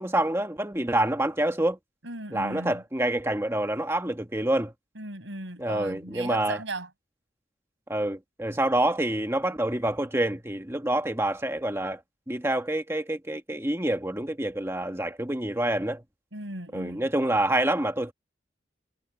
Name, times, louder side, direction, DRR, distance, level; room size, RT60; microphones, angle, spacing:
voice 1, 0.0-1.8 2.3-4.7 5.6-6.6 7.9-12.0 12.3-16.0 16.7-18.1, right 1 dB, 15° right, 1.1 m, -27 dB
voice 2, 2.0-2.8 4.9-6.9 16.3-17.1, right 2 dB, 85° right, 7.8 m, -37 dB
head